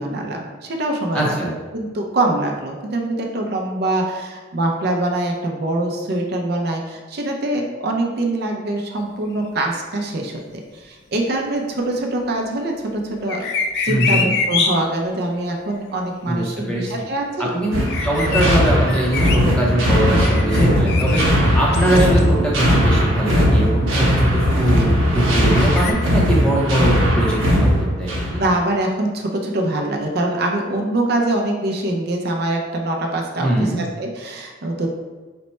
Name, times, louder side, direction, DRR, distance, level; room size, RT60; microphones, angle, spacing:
voice 1, 0.0-10.4 10.7-13.5 13.8-17.5 18.3-18.4 20.2-20.7 24.8-24.9 25.4-25.6 28.3-34.9, right 1 dB, 50° right, 1 dB, 0.5 m, -24 dB
voice 2, 1.1-1.5 13.9-14.3 16.3-16.9 17.4-21.2 21.5-28.2 33.4-33.8, right 1 dB, 5° left, -4 dB, 0.6 m, -21 dB
sound 1, 13.3-14.7 17.8-18.5 18.9-19.4 19.9-21.2 21.7-22.3 23.0-23.1 25.5-25.9, left 5 dB, 55° left, 0.4 m, -24 dB
sound 2, 17.7-28.5, equal, 75° right, 0.9 m, -18 dB
4.3 x 2.1 x 4.2 m, 1.3 s
head